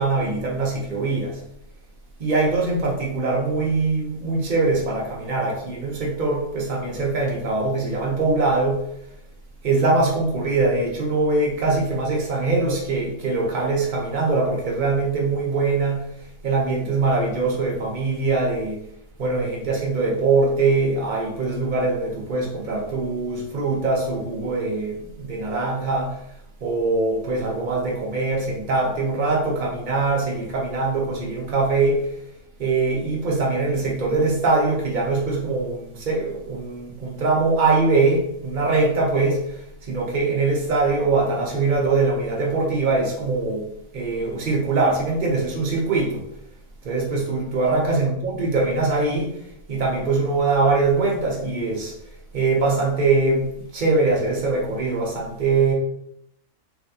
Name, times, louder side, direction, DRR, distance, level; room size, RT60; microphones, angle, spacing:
voice 1, 0.0-1.4 2.2-8.8 9.6-16.0 16.4-18.8 19.2-26.2 26.6-32.0 32.6-43.6 43.9-46.2 46.8-49.3 49.7-51.9 52.3-53.5 53.7-55.7, right 3 dB, 85° right, -2 dB, 0.4 m, -22 dB
3.3 x 2.5 x 2.6 m, 0.75 s
omnidirectional pair, 1.5 m